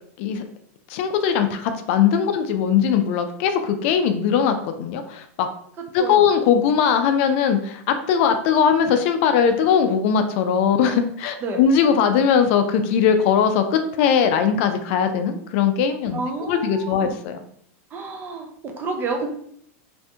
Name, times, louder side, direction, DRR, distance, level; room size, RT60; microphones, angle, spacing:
voice 1, 0.9-5.5 5.9-17.4, left 7 dB, 55° left, 7 dB, 0.3 m, -20 dB
voice 2, 5.8-6.3 11.4-11.6 16.1-17.2 17.9-19.3, right 3 dB, 25° right, 3 dB, 0.5 m, -30 dB
2.5 x 2.1 x 2.7 m, 0.66 s
supercardioid pair, 135°, 8 cm